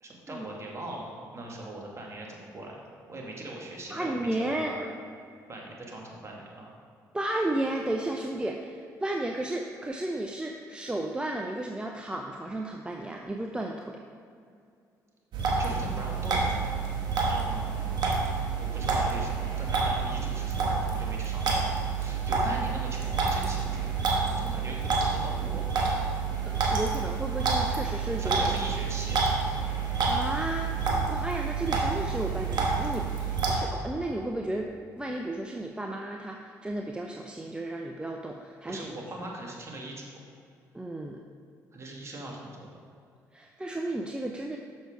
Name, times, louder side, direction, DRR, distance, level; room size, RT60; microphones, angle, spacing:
voice 1, 0.0-4.8 5.5-6.7 15.6-16.4 17.3-18.2 18.6-21.6 22.0-24.0 24.4-25.7 28.2-29.2 38.7-40.1 41.7-42.8, right 1 dB, 35° right, -1 dB, 2.0 m, -40 dB
voice 2, 3.9-4.7 7.1-14.0 26.4-28.4 30.1-30.7 31.1-33.1 33.5-34.7 35.0-38.8 40.7-41.2 43.3-44.6, right 1 dB, 10° right, 1 dB, 0.7 m, -33 dB
sound 1, 15.3-33.5, right 4 dB, 65° right, 1.3 m, -28 dB
6.7 x 6.4 x 4.7 m, 2.4 s
supercardioid pair, 60°, 8 cm